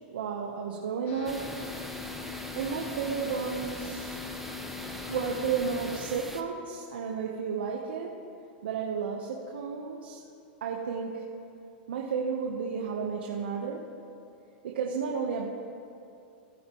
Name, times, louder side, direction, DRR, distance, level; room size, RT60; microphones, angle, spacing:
voice 1, 0.1-1.6 2.6-4.1 5.1-8.1 8.6-10.2 10.6-11.3 11.9-13.9 14.6-15.5, right 6 dB, 85° right, 0 dB, 1.0 m, -32 dB
sound 1, 1.1-6.0, left 8 dB, 45° left, 2.1 m, -42 dB
sound 2, 1.3-6.4, right 1 dB, 5° right, 0.7 m, -41 dB
18.5 x 9.4 x 3.0 m, 2.6 s
hypercardioid pair, 130°, 5 cm